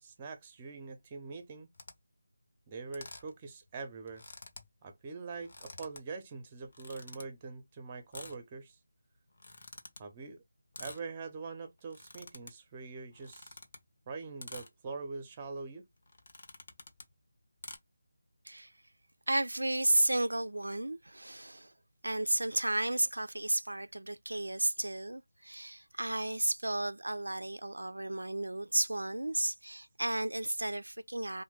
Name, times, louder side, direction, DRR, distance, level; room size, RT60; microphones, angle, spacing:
voice 1, 0.0-1.7 2.7-4.2 4.8-8.8 10.0-10.4 10.8-13.6 14.1-15.9, right 4 dB, 20° right, 0.6 m, -43 dB
sound 1, 1.7-1.9 2.9-3.3 3.7-3.8 4.0-4.7 5.3-6.0 6.7-7.2 8.1-8.4 9.3-10.0 10.7-11.0 11.8-12.5 13.1-13.8 14.4-14.7 15.4-15.6 16.1-17.1 17.6-17.8, left 2 dB, 50° left, 0.8 m, -49 dB
voice 2, 19.3-21.7 22.0-31.4, right 1 dB, 85° right, 0.3 m, -33 dB
3.1 x 2.1 x 3.1 m
figure-of-eight pair, 165°, 0 cm